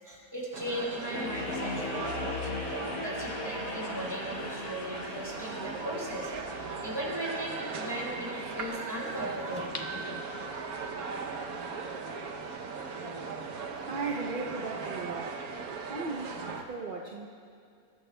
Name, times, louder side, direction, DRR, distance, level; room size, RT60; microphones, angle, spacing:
voice 1, 0.0-9.7, equal, 15° right, -4 dB, 2.7 m, -38 dB
sound 1, 0.5-16.6, right 5 dB, 75° right, 1.3 m, -38 dB
sound 2, 1.1-12.2, left 5 dB, 70° left, 1.3 m, -41 dB
sound 3, 9.6-10.9 11.4-11.5, left 3 dB, 40° left, 0.7 m, -42 dB
voice 2, 13.8-15.3 15.9-17.3, right 4 dB, 45° right, -1 dB, 0.7 m, -36 dB
20.5 x 14.0 x 2.2 m, 2.4 s
omnidirectional pair, 1.6 m